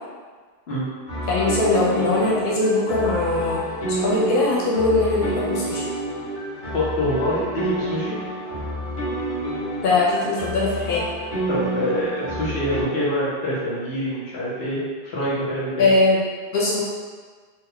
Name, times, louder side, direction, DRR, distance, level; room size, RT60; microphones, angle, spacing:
sound 1, 1.1-12.8, right 1 dB, 45° left, 1.1 m, -29 dB
voice 1, 1.3-3.6 3.9-5.9 9.8-11.0 15.8-16.2 16.5-16.8, left 2 dB, 65° left, -6 dB, 0.8 m, -21 dB
voice 2, 6.7-8.2 11.5-15.9, equal, 85° left, -7 dB, 1.1 m, -25 dB
2.8 x 2.2 x 3.6 m, 1.5 s
omnidirectional pair, 1.1 m